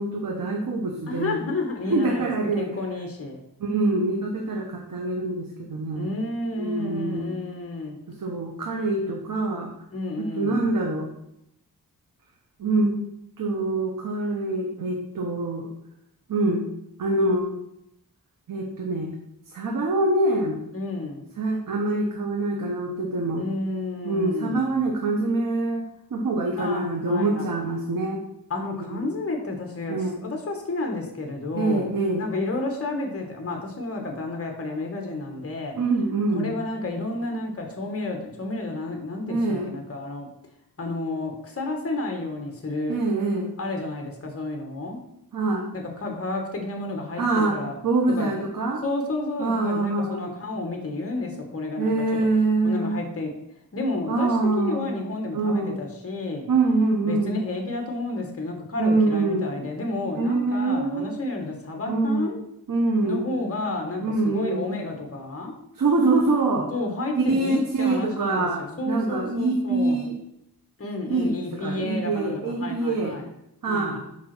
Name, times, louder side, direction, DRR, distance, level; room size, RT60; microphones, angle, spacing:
voice 1, 0.0-1.4 1.9-2.7 3.6-6.1 6.6-7.3 8.2-9.7 10.2-11.1 12.6-13.0 13.4-15.7 16.3-16.6 17.0-17.5 18.5-19.1 19.5-20.6 21.4-23.4 24.0-28.2 28.7-29.0 29.9-30.3 31.5-32.2 35.8-36.5 39.2-39.7 42.9-43.5 45.3-45.7 47.2-47.6 47.8-48.8 49.4-50.3 51.8-53.0 54.1-55.0 55.3-55.8 56.5-57.4 58.8-59.5 60.2-61.2 61.9-62.2 62.7-63.3 64.0-64.7 65.8-66.7 67.2-70.2 71.1-73.1 73.6-74.0, right 2 dB, 65° right, 0 dB, 1.2 m, -25 dB
voice 2, 1.1-2.3 2.6-3.4 5.9-8.0 9.9-10.7 20.7-21.3 23.4-24.8 26.6-27.4 28.5-31.9 32.2-35.8 36.3-40.3 40.8-43.0 43.6-45.0 45.7-47.7 48.1-48.3 48.8-51.9 52.6-53.3 53.7-56.4 57.0-62.4 63.0-65.5 66.7-68.5 68.8-70.1 70.8-73.3 73.7-74.0, left 2 dB, 40° left, 3 dB, 1.6 m, -31 dB
6.0 x 5.1 x 6.1 m, 0.80 s
wide cardioid pair, 115°, 36 cm